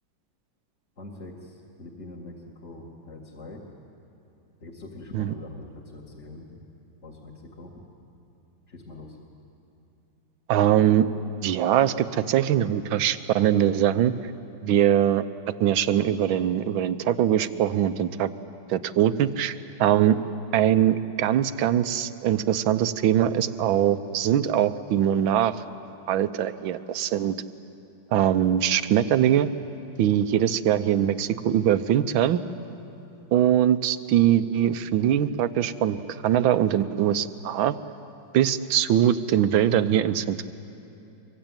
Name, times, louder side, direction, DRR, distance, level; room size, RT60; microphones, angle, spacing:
voice 1, 1.0-2.3 2.6-3.6 4.6-6.5 7.0-7.8 8.7-9.2, left 2 dB, 35° left, -3 dB, 2.3 m, -43 dB
voice 2, 10.5-11.1 11.4-14.1 14.6-15.2 15.6-18.3 18.7-20.2 20.5-25.6 26.1-27.3 28.1-29.5 30.0-32.4 33.3-37.8 38.3-40.5, right 10 dB, 75° right, 13 dB, 1.5 m, -22 dB
24.0 x 23.5 x 9.0 m, 2.8 s
omnidirectional pair, 2.3 m